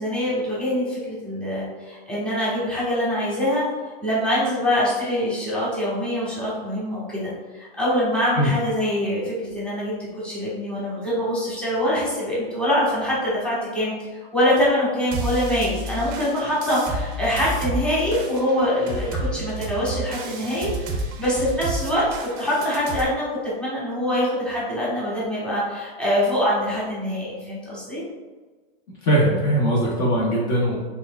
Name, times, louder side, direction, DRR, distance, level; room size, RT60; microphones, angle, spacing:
voice 1, 0.0-3.6 4.0-22.0 22.4-28.0, equal, 5° left, -8 dB, 1.2 m, -24 dB
sound 1, 15.1-23.0, right 1 dB, 30° right, 0.5 m, -31 dB
voice 2, 29.0-30.8, right 1 dB, 40° left, -4 dB, 0.9 m, -20 dB
4.3 x 3.5 x 2.2 m, 1.3 s
hypercardioid pair, 135°, 31 cm